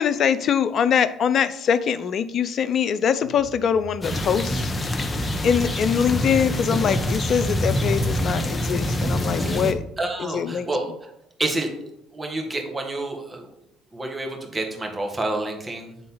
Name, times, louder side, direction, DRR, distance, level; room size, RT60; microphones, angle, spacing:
voice 1, 0.0-4.7 5.4-9.8 10.3-10.7, left 7 dB, 55° left, 14 dB, 0.5 m, -23 dB
sound 1, 3.2-8.2, right 4 dB, 80° right, 1.3 m, -43 dB
sound 2, 4.0-9.7, left 1 dB, 25° left, 0.9 m, -25 dB
voice 2, 10.0-11.1 11.4-13.5 13.9-16.0, right 2 dB, 20° right, 2 dB, 1.7 m, -29 dB
8.2 x 3.8 x 3.9 m, 0.77 s
hypercardioid pair, 60°, 0 cm